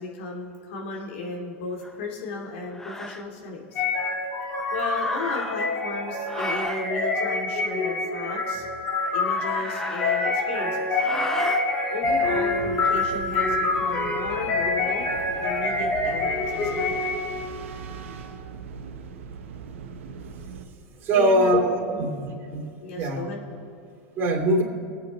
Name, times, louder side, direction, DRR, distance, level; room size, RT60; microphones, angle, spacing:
voice 1, 0.0-3.8 4.7-8.7 9.1-11.1 11.9-15.0 15.4-16.9 21.1-21.6 21.9-22.1 22.8-23.5, left 3 dB, 70° left, 0 dB, 2.4 m, -35 dB
sound 1, 1.8-2.0 2.7-3.2 4.9-5.8 6.3-6.9 9.1-10.5 10.9-11.6, left 1 dB, 5° left, 0.8 m, -35 dB
sound 2, 3.8-17.4, left 3 dB, 30° left, 2.5 m, -26 dB
voice 2, 4.9-5.2 5.8-6.7 21.0-22.7 23.0-23.2 24.2-24.6, right 1 dB, 35° right, -2 dB, 2.9 m, -24 dB
sound 3, 12.0-20.7, right 6 dB, 80° right, 1.1 m, -40 dB
23.0 x 8.7 x 4.1 m, 2.3 s
hypercardioid pair, 115°, 7 cm